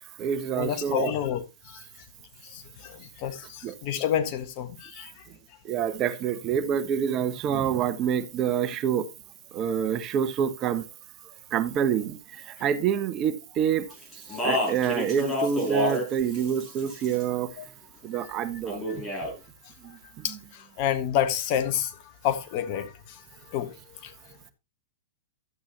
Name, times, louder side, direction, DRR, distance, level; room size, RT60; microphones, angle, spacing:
voice 1, 0.0-1.2 3.6-3.8 5.6-9.1 9.5-10.8 11.5-13.9 14.3-17.6 18.0-19.0 19.8-20.4, right 8 dB, 35° right, 1.1 m, -27 dB
voice 2, 0.5-1.8 2.4-5.1 14.3-14.4 20.2-23.2 23.5-24.1, left 10 dB, 45° left, 1.5 m, -29 dB
Speech, 14.1-16.1 16.3-17.2 18.7-19.3, left 1 dB, 20° left, 6.6 m, -28 dB
12.0 x 8.6 x 2.9 m
hypercardioid pair, 110°, 0 cm